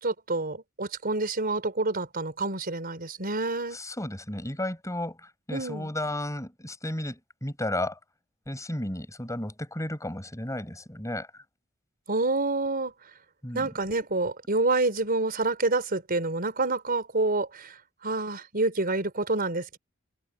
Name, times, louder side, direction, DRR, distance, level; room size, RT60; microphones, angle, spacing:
voice 1, 0.0-3.8 5.5-5.9 12.1-12.9 13.5-17.8 18.0-19.8, right 2 dB, 45° right, 4.6 m, -28 dB
voice 2, 3.7-5.2 5.5-8.0 8.5-11.3 13.4-13.7, left 1 dB, 15° left, 7.0 m, -33 dB
head